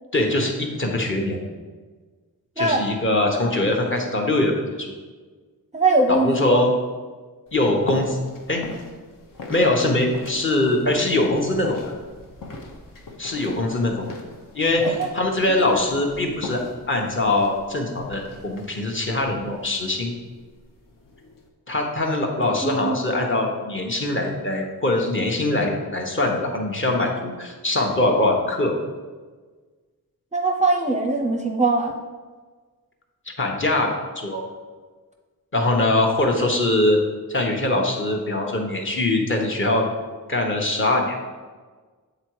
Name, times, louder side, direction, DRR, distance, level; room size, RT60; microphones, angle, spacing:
voice 1, 0.1-1.4 2.6-4.5 4.8-4.9 6.1-6.7 7.5-8.2 8.5-8.6 9.5-11.9 13.2-14.1 14.5-14.8 15.1-16.6 16.9-20.1 21.7-28.7 33.4-33.9 34.2-34.5 35.5-37.0 37.3-39.8 40.3-41.1, left 2 dB, 35° left, 0 dB, 1.0 m, -22 dB
voice 2, 2.6-2.9 5.7-6.6 14.8-15.1 15.5-15.7 22.6-23.0 30.3-31.9, right 3 dB, 20° right, 1 dB, 0.5 m, -22 dB
sound 1, 7.5-21.5, left 3 dB, 65° left, 1.0 m, -40 dB
7.9 x 3.9 x 4.6 m, 1.4 s
wide cardioid pair, 125°, 35 cm